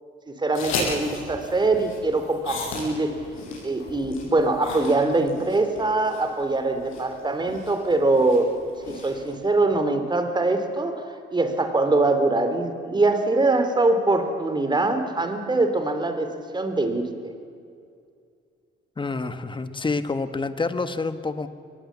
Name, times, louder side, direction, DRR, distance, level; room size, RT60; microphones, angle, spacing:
voice 1, 0.3-3.1 3.6-8.5 8.9-17.3, right 2 dB, 20° right, 8 dB, 3.0 m, -23 dB
sound 1, 0.5-9.3, left 3 dB, 85° left, 7.4 m, -35 dB
voice 2, 19.0-21.5, left 3 dB, 25° left, 10 dB, 1.4 m, -28 dB
23.5 x 19.0 x 7.4 m, 2.4 s
cardioid pair, 90°, 20 cm